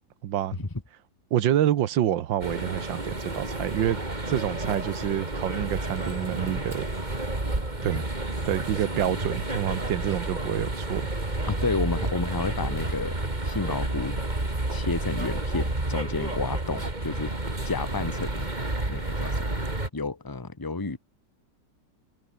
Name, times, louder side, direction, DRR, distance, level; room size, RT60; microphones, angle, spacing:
voice 1, 0.2-0.7 1.3-4.0 4.3-6.9 7.8-8.1 8.5-11.1, right 11 dB, 85° right, 1.7 m, -27 dB
sound 1, 2.4-19.9, right 2 dB, 25° right, 3.6 m, -30 dB
voice 2, 11.5-13.2 13.4-14.2 14.7-17.3 17.6-18.5 18.9-19.7 19.9-21.0, left 3 dB, 10° left, 1.4 m, -31 dB
omnidirectional pair, 2.0 m